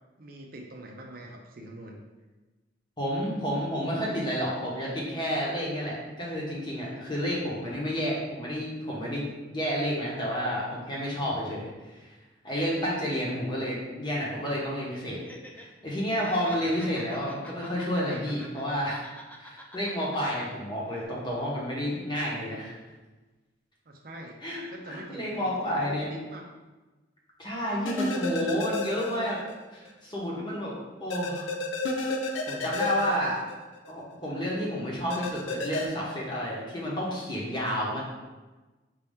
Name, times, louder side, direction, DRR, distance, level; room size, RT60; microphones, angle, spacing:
voice 1, 0.2-2.0 16.5-16.9 23.9-24.4 24.7-26.4 33.0-33.3, right 1 dB, 50° right, 1 dB, 0.5 m, -44 dB
voice 2, 3.0-12.1 12.4-15.2 15.5-19.0 19.4-22.8 24.4-26.1 27.4-29.4 29.7-31.5 32.5-33.4 33.9-38.0, equal, 25° left, -4 dB, 1.0 m, -30 dB
Laughter, 15.1-15.7 16.0-18.6 18.9-20.5 20.9-21.0, equal, 10° left, 0.3 m, -46 dB
sound 1, 27.9-29.5 29.9-30.0 31.1-33.9 35.1-35.9, left 2 dB, 85° left, 0.5 m, -31 dB
5.2 x 2.8 x 3.5 m, 1.2 s
head